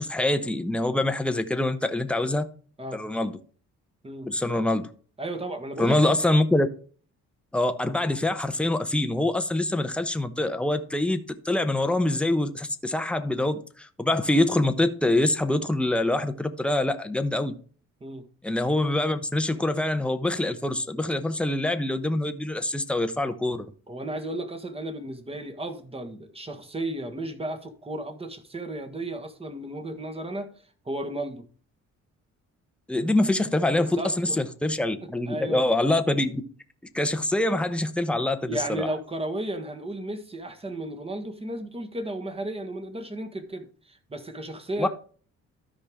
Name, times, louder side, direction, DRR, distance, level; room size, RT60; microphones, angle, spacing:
voice 1, 0.0-2.5 2.9-3.3 4.3-4.9 5.8-6.7 7.5-17.6 18.4-23.7 32.9-36.4 36.9-38.9 44.8-44.9, left 1 dB, 5° left, 0.9 m, -25 dB
voice 2, 5.2-6.2 18.0-18.3 23.9-30.5 30.8-31.5 33.8-34.4 35.0-35.7 38.4-44.9, right 1 dB, 20° right, 1.6 m, -34 dB
13.0 x 4.9 x 3.6 m
cardioid pair, 90°, 30 cm